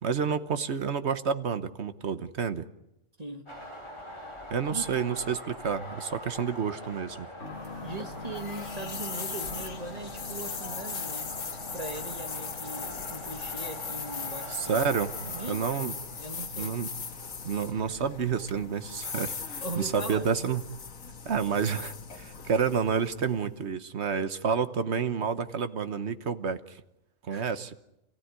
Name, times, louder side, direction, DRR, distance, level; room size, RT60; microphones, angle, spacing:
voice 1, 0.0-2.7 4.5-7.3 14.5-15.9 16.5-16.9 17.4-20.6 21.2-26.8 27.2-27.7, right 6 dB, 60° right, 1.3 m, -29 dB
sound 1, 3.5-18.3, equal, 20° left, 6.0 m, -44 dB
sound 2, 7.4-23.6, left 5 dB, 85° left, 2.0 m, -39 dB
sound 3, 7.4-21.8 22.1-22.2 23.1-23.3, left 4 dB, 60° left, 2.2 m, -49 dB
voice 2, 7.8-11.3 11.7-14.9 15.3-15.9 16.2-16.8 19.6-20.3 27.3-27.5, right 2 dB, 30° right, 1.8 m, -40 dB
29.0 x 15.5 x 9.6 m
omnidirectional pair, 1.4 m